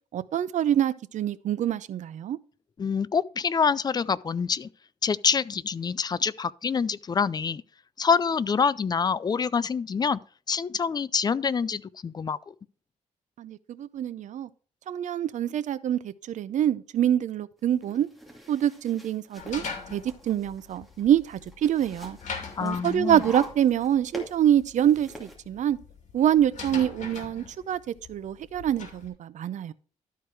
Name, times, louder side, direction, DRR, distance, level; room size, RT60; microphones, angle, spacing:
voice 1, 0.1-2.4 13.4-14.5 14.9-18.1 18.5-22.2 22.6-25.8 26.1-27.8 28.1-29.7, right 10 dB, 65° right, 0.6 m, -25 dB
voice 2, 2.8-4.7 5.0-7.6 8.0-10.2 10.5-12.4 22.6-23.2, left 6 dB, 30° left, 0.4 m, -26 dB
sound 1, 17.6-25.4, left 1 dB, ahead, 2.5 m, -46 dB
sound 2, 19.4-29.1, left 5 dB, 65° left, 2.4 m, -42 dB
12.5 x 4.7 x 4.7 m
cardioid pair, 105°, 13 cm